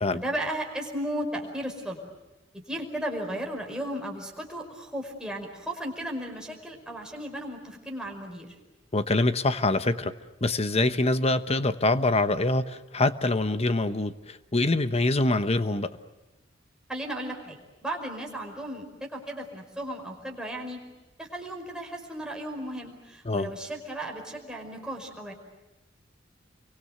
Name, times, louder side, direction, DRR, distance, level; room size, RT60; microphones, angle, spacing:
voice 1, 0.1-2.0 2.7-8.5 16.9-17.6 17.8-20.8 21.2-25.3, right 1 dB, 5° right, 0 dB, 5.2 m, -35 dB
voice 2, 8.9-10.1 10.4-15.9 23.2-23.5, left 2 dB, 35° left, 11 dB, 1.1 m, -25 dB
29.5 x 24.5 x 8.0 m, 1.0 s
head